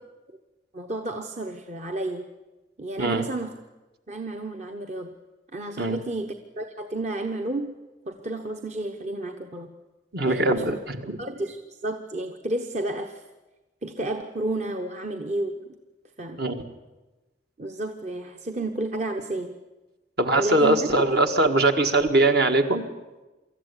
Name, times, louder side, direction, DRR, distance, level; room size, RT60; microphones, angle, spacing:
voice 1, 0.7-2.3 2.8-3.5 4.1-5.1 5.5-7.7 8.0-9.7 10.2-10.8 11.2-13.2 13.8-15.8 16.2-16.6 17.6-19.6 20.3-21.1, right 2 dB, 40° right, 4 dB, 1.0 m, -31 dB
voice 2, 10.1-11.2 16.4-16.6 20.2-22.9, right 2 dB, 60° right, 5 dB, 1.9 m, -21 dB
24.0 x 14.0 x 9.9 m, 1.1 s
head